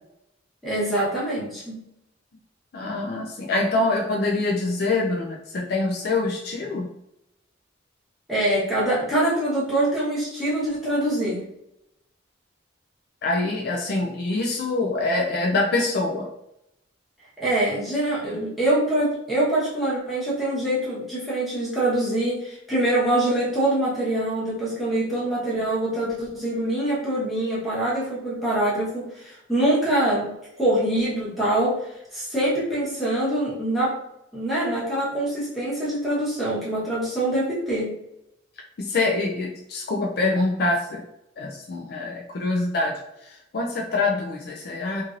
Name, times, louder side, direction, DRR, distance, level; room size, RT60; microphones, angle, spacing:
voice 1, 0.6-1.8 8.3-11.4 17.4-30.3 30.6-31.8 32.1-33.9 34.3-37.9, right 1 dB, ahead, -10 dB, 1.1 m, -24 dB
voice 2, 2.7-6.9 13.2-16.3 38.8-41.0 41.4-42.9 43.2-45.0, left 2 dB, 50° left, 0 dB, 0.4 m, -25 dB
3.0 x 2.6 x 2.5 m, 0.82 s
head